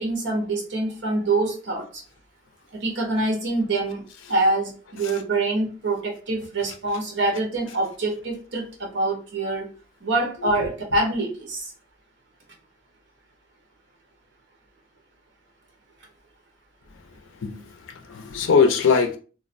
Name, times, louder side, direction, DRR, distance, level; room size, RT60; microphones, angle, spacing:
voice 1, 0.0-2.0 2.7-4.0 4.3-9.7 10.0-11.7, right 2 dB, 65° right, 0.8 m, -25 dB
voice 2, 17.4-19.2, left 5 dB, 80° left, 0.5 m, -22 dB
2.4 x 2.1 x 2.5 m
head